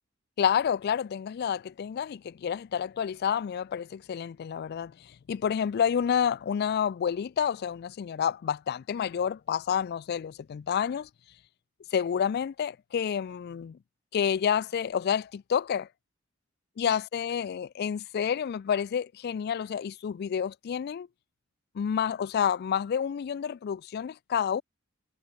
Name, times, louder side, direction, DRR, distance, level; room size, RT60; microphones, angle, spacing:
voice 1, 0.4-11.1 11.9-13.8 14.1-15.9 16.8-21.1 21.7-24.6, left 8 dB, 50° left, 0.3 m, -29 dB
head